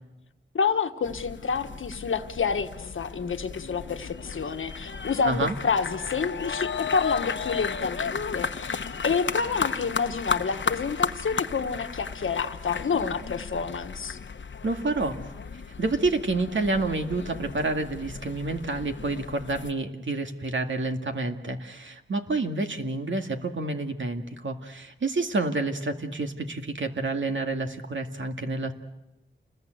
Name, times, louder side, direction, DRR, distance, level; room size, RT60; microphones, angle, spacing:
voice 1, 0.5-14.2, left 5 dB, 90° left, 7 dB, 1.4 m, -28 dB
sound 1, 1.0-19.7, left 5 dB, 70° left, 1.0 m, -34 dB
voice 2, 5.2-5.5 14.6-15.2 15.8-28.7, right 3 dB, 70° right, 5 dB, 2.2 m, -29 dB
29.0 x 21.0 x 8.0 m, 0.99 s
wide cardioid pair, 65°, 20 cm